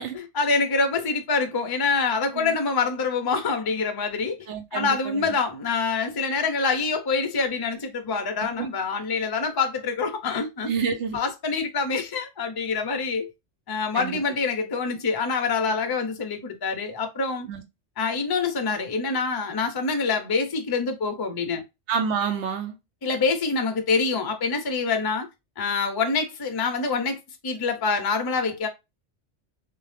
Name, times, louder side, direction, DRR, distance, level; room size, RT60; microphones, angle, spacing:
voice 1, 0.0-4.4 4.7-10.7 11.1-13.3 13.7-17.5 18.0-21.6 23.0-25.3 25.6-27.2 27.4-28.7, left 4 dB, 35° left, 0.3 m, -26 dB
voice 2, 4.5-5.3 8.6-8.7 10.7-11.2 13.9-14.2 17.5-17.6 21.9-22.7, right 6 dB, 75° right, 1.0 m, -28 dB
2.7 x 2.1 x 3.2 m
omnidirectional pair, 1.2 m